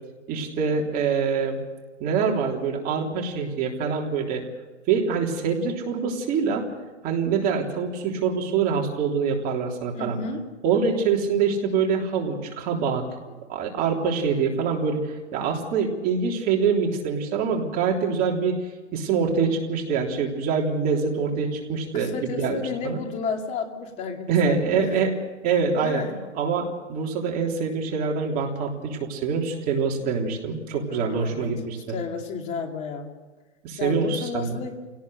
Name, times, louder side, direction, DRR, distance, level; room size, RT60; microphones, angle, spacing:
voice 1, 0.3-1.6 2.0-4.4 4.9-6.6 7.0-10.2 10.6-13.1 13.5-18.6 18.9-23.0 24.3-25.1 25.4-26.0 26.4-32.0 33.6-34.6, right 5 dB, 25° right, 0 dB, 3.5 m, -25 dB
voice 2, 9.9-10.4 21.9-24.9 25.8-26.2 30.9-31.5 31.9-33.1 33.8-34.8, left 5 dB, 20° left, 4 dB, 2.4 m, -32 dB
26.0 x 18.0 x 6.5 m, 1.2 s
hypercardioid pair, 160°, 35 cm